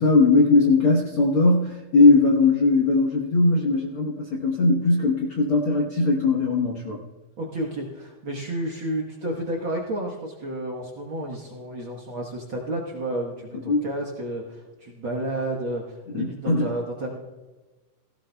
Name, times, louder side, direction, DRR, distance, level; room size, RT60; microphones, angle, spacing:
voice 1, 0.0-7.0 13.7-13.8 16.1-16.7, left 3 dB, 65° left, -1 dB, 1.4 m, -19 dB
voice 2, 7.4-17.2, right 1 dB, 55° right, -2 dB, 1.5 m, -31 dB
17.0 x 16.0 x 2.3 m, 1.2 s
omnidirectional pair, 3.9 m